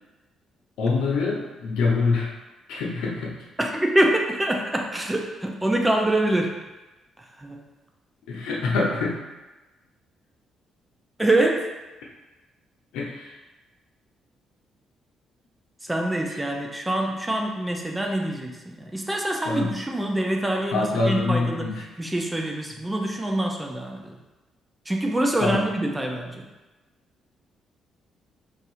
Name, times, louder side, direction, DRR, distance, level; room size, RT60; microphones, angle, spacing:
voice 1, 0.8-2.3 2.7-3.5 8.3-9.2 12.9-13.4 16.3-16.4 19.4-19.7 20.7-21.8 25.4-25.7, left 3 dB, 90° left, -3 dB, 0.7 m, -25 dB
voice 2, 3.6-6.6 7.2-7.6 11.2-11.7 15.8-24.2 24.9-26.5, right 1 dB, 10° right, 1 dB, 0.5 m, -25 dB
2.7 x 2.5 x 4.1 m, 1.1 s
cardioid pair, 90°, 0 cm